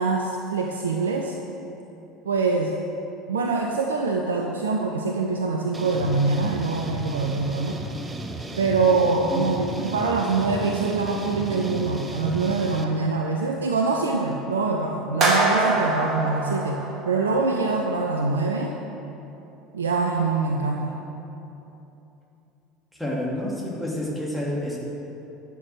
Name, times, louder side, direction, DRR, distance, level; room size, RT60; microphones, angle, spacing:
voice 1, 0.0-1.3 2.3-2.7 3.3-7.8 8.6-18.7 19.7-21.0, right 3 dB, 75° right, 2 dB, 0.6 m, -24 dB
sound 1, 5.7-12.8, right 2 dB, 20° right, 0.9 m, -35 dB
sound 2, 15.2-17.4, right 2 dB, 40° right, 2.3 m, -23 dB
voice 2, 23.0-24.8, left 1 dB, ahead, -4 dB, 2.6 m, -29 dB
12.0 x 7.1 x 6.3 m, 3.0 s
figure-of-eight pair, 70°, 0 cm